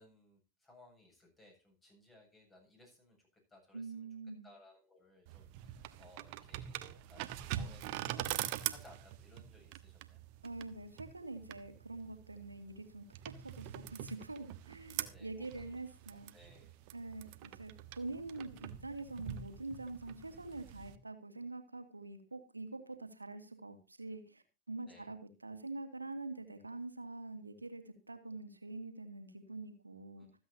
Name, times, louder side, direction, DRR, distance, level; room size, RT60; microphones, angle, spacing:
voice 1, 0.0-4.1 4.4-10.2 15.0-15.8 16.3-16.8 24.8-25.1 30.2-30.3, left 1 dB, 15° left, 2 dB, 7.9 m, -62 dB
voice 2, 3.7-4.5 7.5-7.7 10.4-16.3 16.9-30.3, right 2 dB, 80° right, 7 dB, 2.2 m, -45 dB
sound 1, 5.3-21.0, right 13 dB, 45° right, 1.2 m, -44 dB
26.0 x 8.6 x 2.8 m, 0.30 s
figure-of-eight pair, 90°, 0 cm